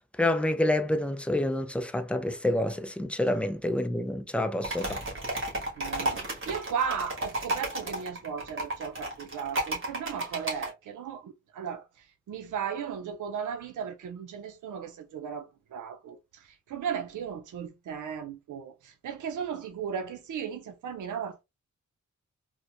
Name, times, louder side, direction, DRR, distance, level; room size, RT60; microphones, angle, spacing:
voice 1, 0.2-5.0, left 1 dB, 5° left, 0.4 m, -28 dB
sound 1, 4.6-10.7, right 1 dB, 45° right, 1.7 m, -33 dB
voice 2, 5.8-11.8 12.3-15.5 15.7-16.2 16.7-21.4, right 7 dB, 90° right, 0.5 m, -36 dB
4.2 x 2.2 x 2.4 m
cardioid pair, 85°, 30 cm